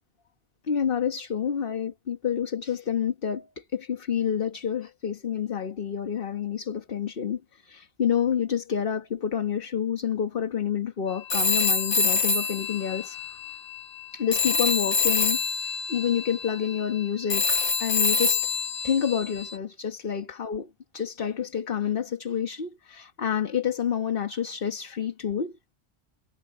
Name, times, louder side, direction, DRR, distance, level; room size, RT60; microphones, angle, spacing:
voice 1, 0.7-13.6 14.1-15.4 15.9-18.5 18.8-25.7, left 8 dB, 55° left, 1.4 m, -28 dB
Telephone, 11.3-14.0 14.3-19.6, left 4 dB, 70° left, 1.7 m, -26 dB
omnidirectional pair, 1.2 m